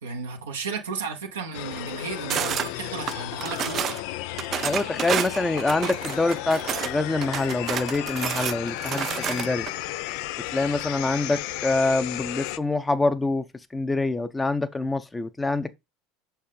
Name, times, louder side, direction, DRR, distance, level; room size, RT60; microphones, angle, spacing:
voice 1, 0.0-3.9, right 5 dB, 90° right, 0.9 m, -34 dB
sound 1, 1.5-12.6, left 16 dB, 70° left, 0.3 m, -34 dB
sound 2, 2.3-2.7 3.1-4.0 4.4-6.9 7.2-9.7, right 10 dB, 45° right, 0.3 m, -29 dB
voice 2, 4.6-9.7 10.5-13.4 13.7-15.7, left 3 dB, 15° left, 0.6 m, -25 dB
6.3 x 4.3 x 3.7 m
hypercardioid pair, 80°, 0 cm